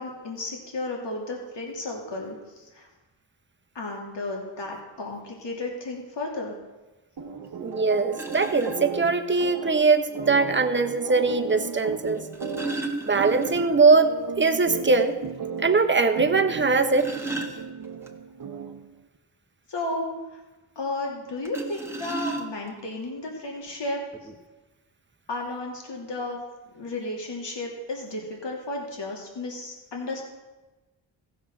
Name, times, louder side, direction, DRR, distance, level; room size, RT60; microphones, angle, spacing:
voice 1, 0.0-2.4 2.7-2.9 3.7-6.6 19.7-20.1 20.8-24.0 25.3-26.4 26.7-30.2, left 2 dB, 70° left, -1 dB, 3.0 m, -33 dB
sound 1, 7.2-18.9, right 5 dB, 55° right, 1.0 m, -36 dB
sound 2, 7.4-7.5 8.1-8.8 10.2-10.3 12.1-13.8 14.1-14.2 14.6-14.7 15.2-15.3 16.6-18.1 21.4-22.8 23.7-23.8 24.1-24.3, right 2 dB, 5° right, 1.5 m, -34 dB
voice 2, 7.6-12.2 13.0-15.2 15.6-17.1, right 4 dB, 25° right, 6 dB, 1.0 m, -21 dB
15.5 x 7.2 x 6.1 m, 1.1 s
wide cardioid pair, 95°, 44 cm